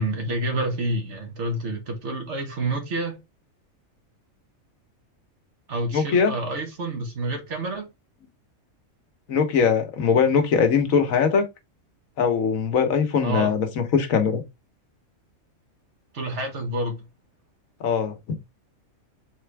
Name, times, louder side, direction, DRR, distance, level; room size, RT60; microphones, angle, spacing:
voice 1, 0.0-3.2 5.7-7.9 13.2-13.5 16.1-17.0, right 1 dB, 60° right, 1.4 m, -28 dB
voice 2, 5.9-6.3 9.3-11.4 12.2-14.4 17.8-18.1, left 6 dB, 80° left, 1.3 m, -21 dB
4.2 x 3.3 x 3.3 m
omnidirectional pair, 1.4 m